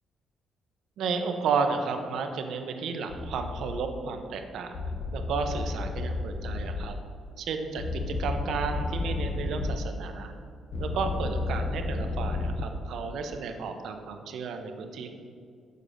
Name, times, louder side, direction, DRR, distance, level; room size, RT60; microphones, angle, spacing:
voice 1, 1.0-4.8 5.1-7.0 7.4-10.3 10.8-15.2, right 5 dB, 75° right, 6 dB, 0.6 m, -32 dB
sound 1, 3.1-3.8 4.7-6.9 7.8-9.8 10.7-12.7, left 3 dB, 40° left, 0.6 m, -32 dB
6.6 x 6.5 x 2.5 m, 2.2 s
cardioid pair, 90°, 0 cm